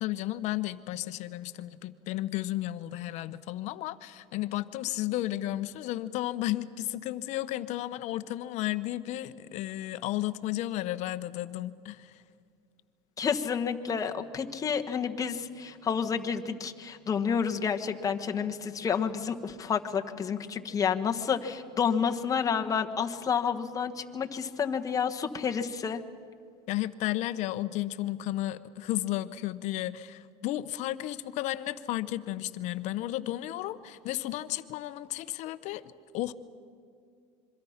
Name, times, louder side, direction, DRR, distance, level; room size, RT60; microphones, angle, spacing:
voice 1, 0.0-12.2 26.7-35.8 36.1-36.3, left 15 dB, 60° left, 14 dB, 0.9 m, -33 dB
voice 2, 13.2-26.0, left 7 dB, 25° left, 5 dB, 1.3 m, -30 dB
26.5 x 23.5 x 5.9 m, 2.2 s
supercardioid pair, 125°, 14 cm